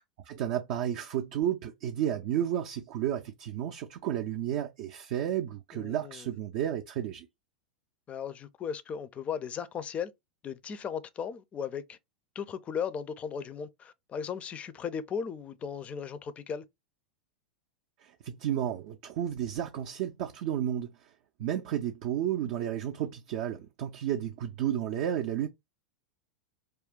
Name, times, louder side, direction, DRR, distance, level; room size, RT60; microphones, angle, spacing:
voice 1, 0.2-7.3 18.0-21.1 21.4-25.5, right 10 dB, 50° right, 0.4 m, -32 dB
voice 2, 5.7-6.3 8.1-10.1 10.4-12.0 12.4-16.6, left 7 dB, 25° left, 0.4 m, -36 dB
2.4 x 2.2 x 3.6 m
figure-of-eight pair, 90°, 5 cm